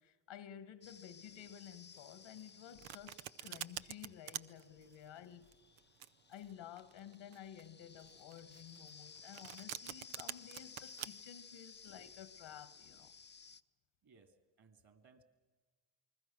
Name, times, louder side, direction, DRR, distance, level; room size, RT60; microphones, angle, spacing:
voice 1, 0.0-5.5 6.3-13.1, left 10 dB, 80° left, 1.7 m, -53 dB
sound 1, 0.8-13.6, left 6 dB, 25° left, 0.6 m, -58 dB
Domestic sounds home sounds, 2.4-11.1, right 13 dB, 90° right, 0.7 m, -47 dB
voice 2, 14.0-15.2, right 4 dB, 50° right, 2.9 m, -65 dB
28.5 x 20.5 x 6.2 m
cardioid pair, 75°, 46 cm